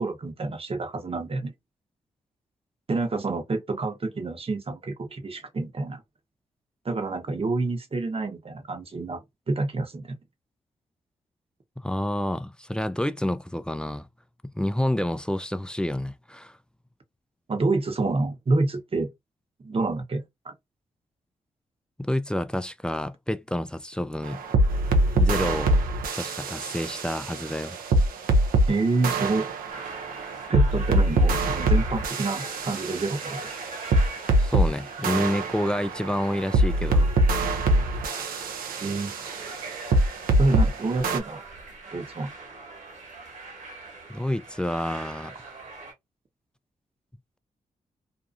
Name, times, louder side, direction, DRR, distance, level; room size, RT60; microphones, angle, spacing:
voice 1, 0.0-1.5 2.9-6.0 6.8-10.2 17.5-19.1 19.6-20.5 28.7-29.5 30.5-33.5 38.8-39.1 40.4-41.4 41.9-42.3, right 3 dB, 40° right, 0.9 m, -28 dB
voice 2, 11.8-14.1 14.5-16.6 22.0-24.4 25.1-25.8 26.1-27.8 34.4-37.1 44.1-45.3, left 1 dB, 5° left, 0.3 m, -29 dB
sound 1, 24.3-28.7 29.0-34.7 35.0-40.7 41.0-41.2, right 1 dB, 75° right, 0.6 m, -24 dB
sound 2, 29.7-45.9, right 3 dB, 60° right, 1.3 m, -42 dB
2.6 x 2.3 x 2.5 m
supercardioid pair, 40°, 15 cm